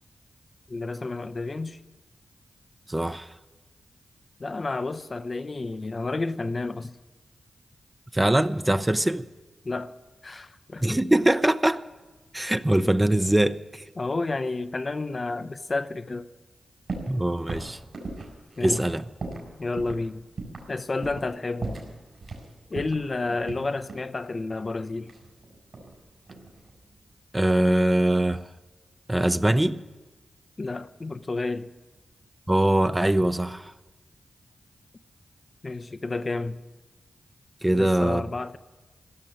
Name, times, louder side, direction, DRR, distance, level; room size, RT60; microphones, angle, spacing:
voice 1, 0.7-1.8 4.4-6.9 9.6-9.9 10.2-11.0 14.0-16.3 18.6-18.8 19.6-20.2 20.7-21.7 22.7-25.1 30.6-31.7 35.6-36.6 37.7-38.6, left 3 dB, 45° left, 0.7 m, -30 dB
voice 2, 2.9-3.3 8.1-9.3 10.8-11.8 12.3-13.9 17.1-17.8 18.6-19.0 27.3-28.4 29.1-29.8 32.5-33.7 37.6-38.2, right 1 dB, 15° right, 0.6 m, -22 dB
sound 1, 16.9-17.2 17.5-19.5 19.8-20.0 20.4-20.7 21.0-21.3 21.6-22.5 22.8-24.1 25.1-26.0 26.3-26.7, right 3 dB, 70° right, 4.4 m, -37 dB
16.5 x 6.7 x 10.0 m
cardioid pair, 45°, 0 cm